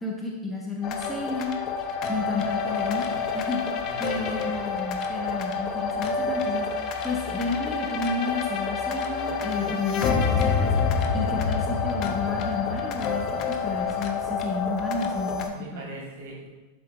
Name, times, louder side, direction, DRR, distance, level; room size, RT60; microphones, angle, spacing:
voice 1, 0.0-1.5 2.1-3.1 3.3-10.7 11.1-15.9, left 3 dB, 5° left, -3 dB, 1.2 m, -32 dB
sound 1, 0.8-15.5, left 5 dB, 35° left, 0.8 m, -28 dB
voice 2, 2.8-3.2 3.9-4.5 15.5-16.5, right 2 dB, 55° right, -2 dB, 2.8 m, -40 dB
12.0 x 6.7 x 2.4 m, 1.2 s
figure-of-eight pair, 90°, 0 cm